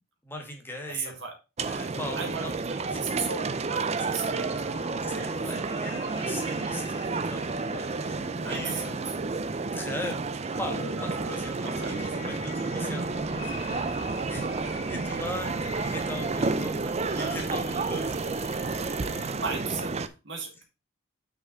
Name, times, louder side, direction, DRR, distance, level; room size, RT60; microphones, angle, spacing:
voice 1, 0.2-1.2 1.7-2.5 2.8-3.1 5.1-8.9 9.6-14.0 14.3-18.2, left 1 dB, 10° left, 2 dB, 1.7 m, -39 dB
voice 2, 0.9-1.4 2.1-5.6 8.4-9.2 11.6-12.0 17.2-17.4 19.4-20.6, right 5 dB, 60° right, 2 dB, 2.1 m, -37 dB
sound 1, 1.6-20.1, right 3 dB, 30° right, 0.5 m, -31 dB
sound 2, 4.3-19.3, left 3 dB, 90° left, 2.4 m, -45 dB
Wind instrument woodwind instrument, 14.1-18.3, right 6 dB, 85° right, 3.0 m, -56 dB
6.4 x 5.9 x 4.4 m, 0.28 s
head